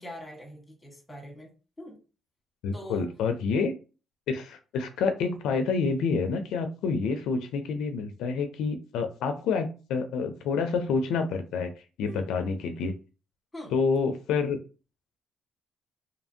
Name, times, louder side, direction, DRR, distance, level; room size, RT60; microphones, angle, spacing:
voice 1, 0.0-1.5 1.8-2.0 2.7-3.1 12.1-12.3 13.5-13.7, equal, 15° left, 2 dB, 1.3 m, -42 dB
voice 2, 2.6-3.7 4.3-11.7 12.0-12.9 13.7-14.6, left 5 dB, 90° left, 7 dB, 0.4 m, -28 dB
2.7 x 2.5 x 2.6 m, 0.34 s
cardioid pair, 90°, 0 cm